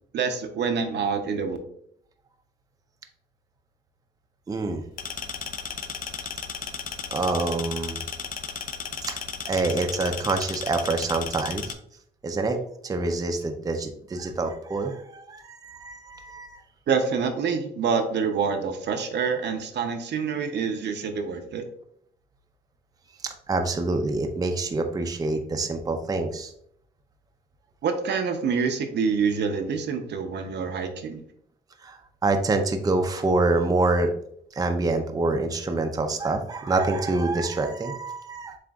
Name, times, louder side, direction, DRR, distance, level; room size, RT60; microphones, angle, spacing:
voice 1, 0.1-1.6 16.9-21.6 27.8-31.2, right 5 dB, 60° right, 6 dB, 0.6 m, -26 dB
voice 2, 4.5-4.8 7.1-8.0 9.0-9.2 9.5-11.6 12.2-16.6 23.2-26.5 31.8-34.1 34.5-38.6, right 3 dB, 20° right, 5 dB, 0.5 m, -26 dB
sound 1, 5.0-11.7, left 6 dB, 45° left, 0.5 m, -35 dB
7.3 x 2.5 x 2.3 m, 0.68 s
cardioid pair, 90°, 20 cm